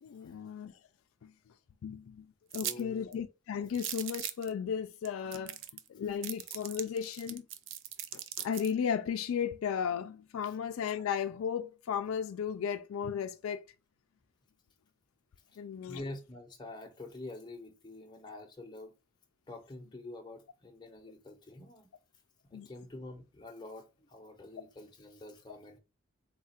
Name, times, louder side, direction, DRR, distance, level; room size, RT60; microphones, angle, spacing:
voice 1, 0.0-0.7 1.2-1.3 1.8-2.3 2.5-5.6 5.9-7.4 8.1-13.6 15.6-16.0 22.5-22.7, left 7 dB, 70° left, 0.3 m, -35 dB
sound 1, 2.5-2.8 3.1-3.2 3.7-4.5 5.0-5.1 5.3-5.9 6.2-8.7, right 11 dB, 55° right, 0.4 m, -39 dB
voice 2, 2.6-3.1 15.5-15.6 15.9-18.9 19.5-21.9 22.5-25.8, left 2 dB, 20° left, 0.6 m, -47 dB
4.0 x 2.4 x 4.2 m
head